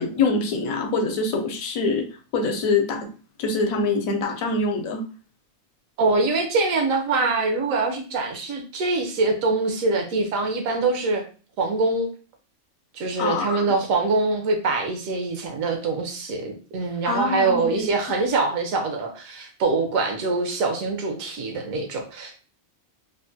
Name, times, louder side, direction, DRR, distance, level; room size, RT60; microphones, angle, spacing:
voice 1, 0.0-2.1 2.3-3.1 3.4-5.0 13.2-13.6 17.1-17.9, left 3 dB, 75° left, 4 dB, 1.0 m, -24 dB
voice 2, 6.0-11.2 11.6-12.1 12.9-22.4, right 3 dB, 75° right, 4 dB, 1.1 m, -24 dB
3.4 x 2.1 x 2.6 m, 0.37 s
omnidirectional pair, 1.5 m